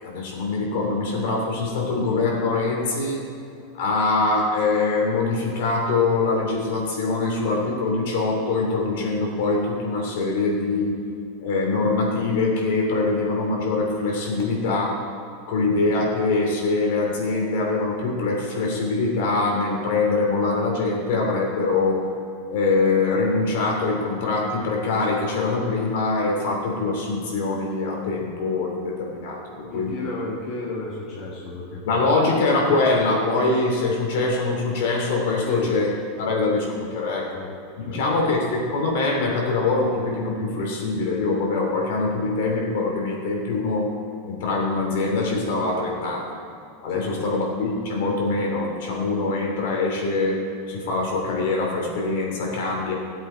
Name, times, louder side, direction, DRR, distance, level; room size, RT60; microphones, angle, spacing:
voice 1, 0.0-3.3 3.7-11.0 11.4-15.0 15.5-22.1 22.5-30.0 31.8-35.9 36.2-37.4 37.8-43.9 44.3-46.3 46.8-50.4 50.7-52.9, left 3 dB, 60° left, -1 dB, 3.0 m, -23 dB
voice 2, 29.7-32.0 35.5-35.7 37.3-37.5 37.9-38.0 46.9-47.5, left 2 dB, 30° left, -6 dB, 1.9 m, -33 dB
17.0 x 8.0 x 4.6 m, 2.5 s
supercardioid pair, 175°, 0 cm